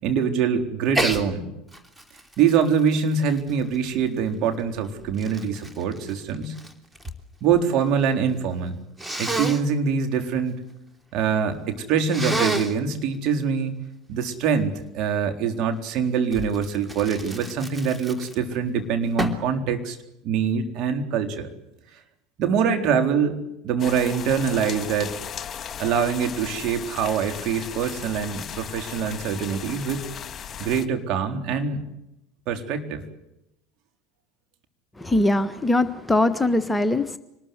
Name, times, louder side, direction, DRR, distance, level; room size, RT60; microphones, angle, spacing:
voice 1, 0.0-1.5 2.4-6.6 7.4-8.8 9.2-10.6 11.1-13.8 14.1-20.0 20.2-21.5 22.4-23.4 23.6-25.1 25.8-30.1 30.6-31.8 32.5-33.0, right 6 dB, 50° right, 5 dB, 4.0 m, -24 dB
Sneeze, 0.9-1.2 1.7-4.1 4.8-7.2 7.5-8.1 9.0-9.6 12.1-12.8 16.3-18.6 19.2-19.5, right 1 dB, 10° right, 3.2 m, -30 dB
sound 1, 23.8-30.9, left 8 dB, 35° left, 2.3 m, -36 dB
voice 2, 35.0-37.2, left 2 dB, 10° left, 10 dB, 1.4 m, -21 dB
26.0 x 20.5 x 7.9 m, 0.86 s
figure-of-eight pair, 75°, 0 cm